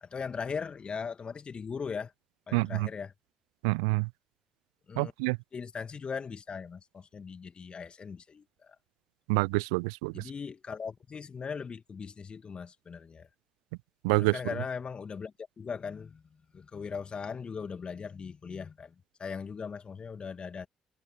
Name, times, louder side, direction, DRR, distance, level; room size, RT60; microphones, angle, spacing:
voice 1, 0.0-2.1 2.5-3.1 4.9-5.1 5.5-8.8 10.1-13.3 14.2-15.3 15.6-16.2 16.5-18.9 19.2-20.7, left 5 dB, 40° left, 2.2 m, -39 dB
voice 2, 2.5-2.9 3.6-4.1 5.0-5.4 9.3-10.2 14.0-14.4, right 31 dB, 70° right, 0.3 m, -27 dB
figure-of-eight pair, 45°, 3 cm